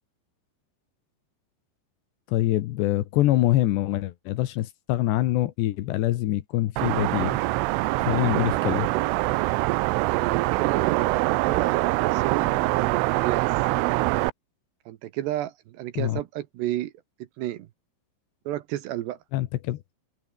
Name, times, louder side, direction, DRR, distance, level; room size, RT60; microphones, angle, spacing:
voice 1, 2.3-7.4 8.0-8.9 16.0-16.2 19.3-19.8, left 15 dB, 75° left, 3.0 m, -25 dB
sound 1, 6.8-14.3, right 20 dB, 90° right, 3.2 m, -24 dB
voice 2, 10.1-13.5 14.9-16.9 17.4-17.7 18.5-19.2, right 14 dB, 75° right, 2.9 m, -32 dB
omnidirectional pair, 5.6 m